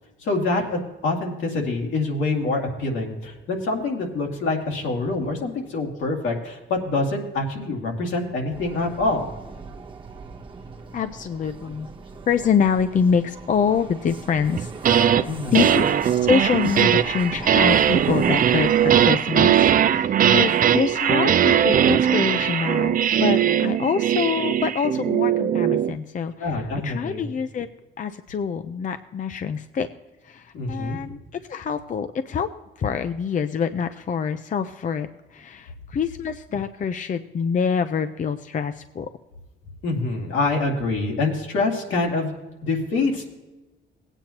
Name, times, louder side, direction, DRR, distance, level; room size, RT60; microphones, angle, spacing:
voice 1, 0.2-9.3 15.3-15.7 26.4-27.2 30.5-31.0 39.8-42.3 42.6-43.2, left 3 dB, 75° left, 0 dB, 2.3 m, -25 dB
Vehicle, 8.5-19.1, right 4 dB, 25° right, 0.9 m, -39 dB
voice 2, 10.9-11.9 12.3-27.7 28.0-29.9 30.2-32.5 32.8-39.1, left 6 dB, 40° left, 9 dB, 0.5 m, -26 dB
sound 1, 14.6-15.2 15.5-26.0, right 9 dB, 45° right, 0.5 m, -19 dB
17.5 x 8.9 x 2.9 m, 1.1 s
cardioid pair, 90°, 20 cm